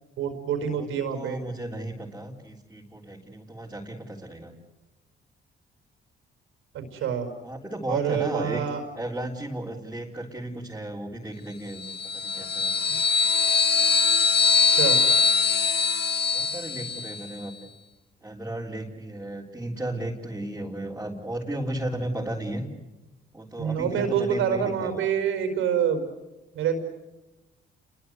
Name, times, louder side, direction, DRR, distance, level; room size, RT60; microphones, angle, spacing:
voice 1, 0.2-1.4 6.7-7.3 7.9-8.8 14.7-15.0 23.6-26.0 26.5-26.8, right 8 dB, 90° right, 7 dB, 4.9 m, -26 dB
voice 2, 0.7-4.5 7.4-8.6 9.0-11.8 12.1-12.8 16.3-17.7 18.2-22.6 23.3-25.0, right 1 dB, 10° right, -4 dB, 3.7 m, -34 dB
sound 1, 11.8-17.2, left 5 dB, 55° left, 1.9 m, -22 dB
29.5 x 22.0 x 8.0 m, 1.1 s
cardioid pair, 90°, 20 cm